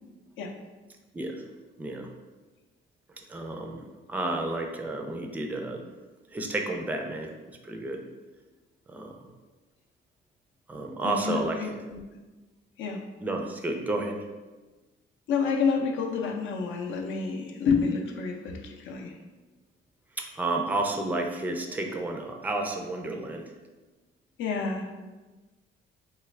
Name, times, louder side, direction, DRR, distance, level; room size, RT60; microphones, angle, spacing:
voice 1, 1.8-2.1 3.3-5.8 6.3-8.0 8.9-9.3 10.7-11.8 13.2-14.2 20.2-23.5, right 2 dB, 10° right, 3 dB, 0.4 m, -31 dB
voice 2, 11.0-12.0 12.8-13.0 15.3-19.1 24.4-24.9, left 5 dB, 75° left, 2 dB, 0.5 m, -29 dB
3.2 x 2.4 x 3.1 m, 1.2 s
cardioid pair, 90°, 20 cm